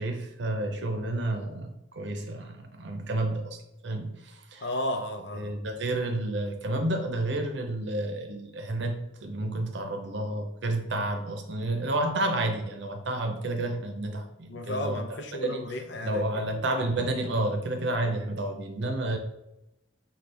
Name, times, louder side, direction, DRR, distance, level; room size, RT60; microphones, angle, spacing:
voice 1, 0.0-3.6 3.8-4.7 5.3-15.0 15.4-15.6 16.0-19.2, right 1 dB, 65° right, 5 dB, 0.7 m, -30 dB
voice 2, 4.6-5.6 14.5-16.5, left 1 dB, 60° left, 6 dB, 0.6 m, -34 dB
5.9 x 2.3 x 3.4 m, 0.90 s
head